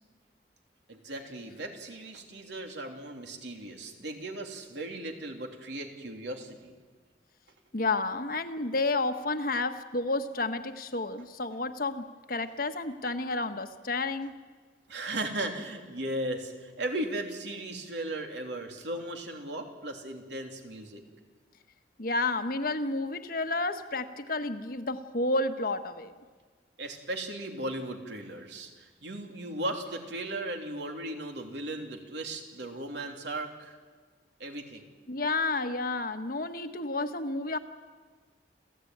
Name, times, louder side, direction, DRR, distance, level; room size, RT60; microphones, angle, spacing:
voice 1, 0.9-6.7 14.9-21.0 26.8-33.8 34.4-34.8, right 1 dB, 75° right, 3 dB, 3.2 m, -37 dB
voice 2, 7.7-14.3 22.0-26.1 35.1-37.6, left 2 dB, 50° left, 8 dB, 1.3 m, -31 dB
29.0 x 15.5 x 9.4 m, 1.4 s
head